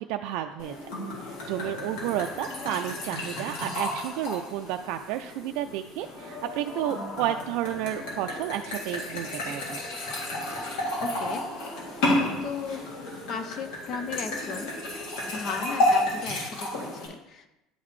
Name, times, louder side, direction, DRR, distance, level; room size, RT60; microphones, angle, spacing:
voice 1, 0.1-0.8 1.2-9.8, right 12 dB, 75° right, 5 dB, 0.3 m, -31 dB
sound 1, 0.6-17.1, left 1 dB, 80° left, 2.2 m, -32 dB
voice 2, 11.0-11.4 12.4-12.9 13.3-14.7 15.3-17.6, left 5 dB, 45° left, 8 dB, 0.6 m, -36 dB
10.5 x 3.9 x 3.1 m, 0.92 s
cardioid pair, 145°, 0 cm